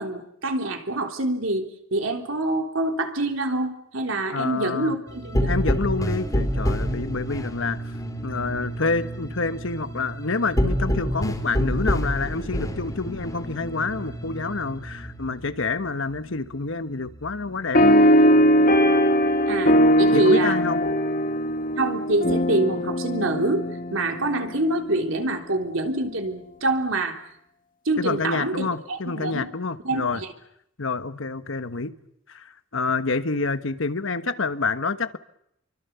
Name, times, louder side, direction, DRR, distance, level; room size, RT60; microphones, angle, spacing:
voice 1, 0.0-5.5 19.5-20.6 21.8-27.2 27.9-29.5 29.8-30.2, right 2 dB, 70° right, 4 dB, 3.5 m, -26 dB
voice 2, 4.3-5.0 5.5-7.9 8.2-17.9 20.1-20.9 28.0-30.2 30.8-31.9 32.3-35.2, left 4 dB, 70° left, 11 dB, 1.3 m, -28 dB
sound 1, 5.1-18.1 18.4-20.3 20.6-22.3 22.7-24.5, equal, 15° left, 3.7 m, -30 dB
sound 2, 17.7-24.6, equal, 45° left, 1.8 m, -20 dB
29.5 x 24.0 x 7.0 m, 0.75 s
head